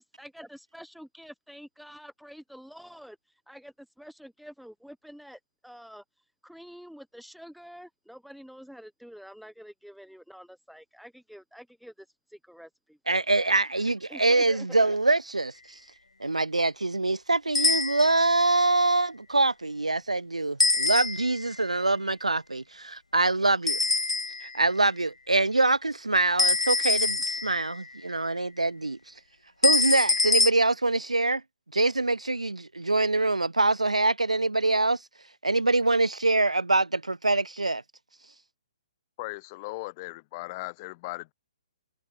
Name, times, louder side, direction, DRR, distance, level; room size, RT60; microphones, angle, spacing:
voice 1, 0.0-3.2 3.5-6.0 6.4-13.5 14.1-15.0, equal, ahead, 3.1 m, -48 dB
voice 2, 13.1-15.5 16.2-23.8 24.4-29.0 29.6-31.4 31.7-35.0 35.4-37.8, right 2 dB, 80° right, 0.4 m, -24 dB
sound 1, 17.5-18.3 20.6-21.5 23.7-24.6 26.4-27.8 29.6-30.5, left 3 dB, 75° left, 0.7 m, -25 dB
voice 3, 39.2-41.3, left 24 dB, 30° left, 1.4 m, -37 dB
figure-of-eight pair, 125°, 4 cm